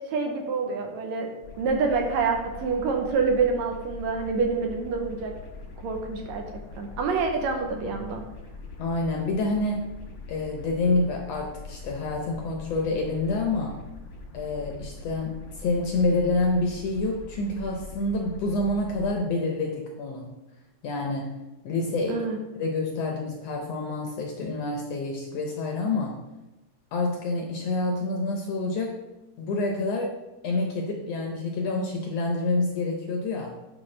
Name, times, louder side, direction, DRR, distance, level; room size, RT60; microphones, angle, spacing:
voice 1, 0.0-1.3 1.6-5.4 5.8-6.5 6.8-8.2 22.1-22.4, right 4 dB, 70° right, 3 dB, 1.9 m, -27 dB
sound 1, 1.4-19.1, left 3 dB, 55° left, 1.3 m, -43 dB
voice 2, 8.8-9.9 10.3-13.8 14.3-20.3 20.8-22.3 22.5-26.2 26.9-29.0 29.4-30.2 30.4-33.5, left 2 dB, 70° left, 1 dB, 1.6 m, -27 dB
10.0 x 5.2 x 3.2 m, 1.0 s
omnidirectional pair, 3.6 m